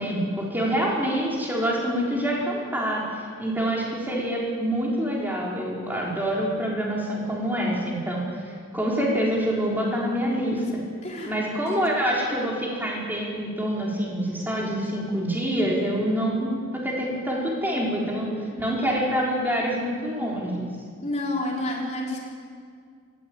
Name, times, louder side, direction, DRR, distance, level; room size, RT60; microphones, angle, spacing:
voice 1, 0.0-10.6 11.2-20.7, equal, 10° right, -4 dB, 4.7 m, -26 dB
voice 2, 11.0-11.3 11.7-11.8 21.0-22.2, left 1 dB, 30° left, -3 dB, 4.6 m, -29 dB
21.0 x 15.5 x 8.9 m, 2.1 s
head